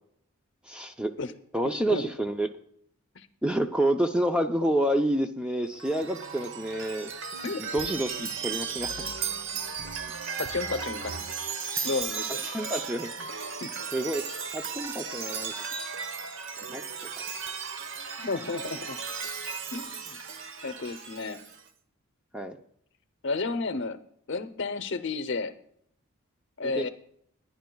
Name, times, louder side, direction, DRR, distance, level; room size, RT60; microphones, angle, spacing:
voice 1, 0.7-1.1 1.5-2.5 3.4-7.1 7.6-8.9 12.4-13.1 13.9-14.2 14.5-15.5 16.7-16.8 22.3-22.6 26.6-26.9, right 1 dB, 5° right, 5 dB, 0.5 m, -28 dB
Chime, 5.7-21.6, right 6 dB, 55° right, 1.0 m, -35 dB
voice 2, 10.4-11.2 11.8-12.5 13.6-13.7 18.2-19.0 19.7-20.2 20.6-21.4 23.2-24.0 24.3-25.5 26.6-26.9, left 3 dB, 55° left, 11 dB, 0.8 m, -32 dB
21.5 x 10.5 x 2.3 m, 0.68 s
head